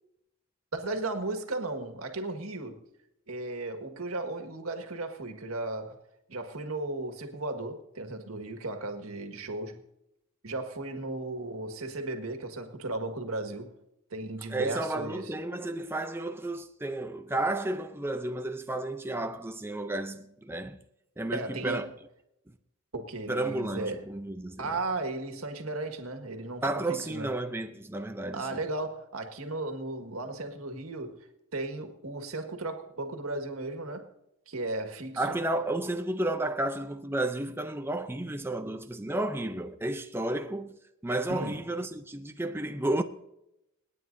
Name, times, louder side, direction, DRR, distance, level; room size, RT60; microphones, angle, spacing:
voice 1, 0.7-2.8 3.3-6.0 6.3-9.8 10.4-13.7 14.1-15.3 21.3-21.9 22.9-24.0 24.6-27.3 28.3-31.2 31.5-34.1 34.5-35.4 41.3-41.7, right 2 dB, 90° right, 1.7 m, -35 dB
voice 2, 14.5-20.8 21.2-21.9 23.3-24.7 26.6-28.6 35.2-40.8 41.0-43.0, right 1 dB, 10° right, 0.5 m, -32 dB
28.0 x 9.5 x 2.7 m
head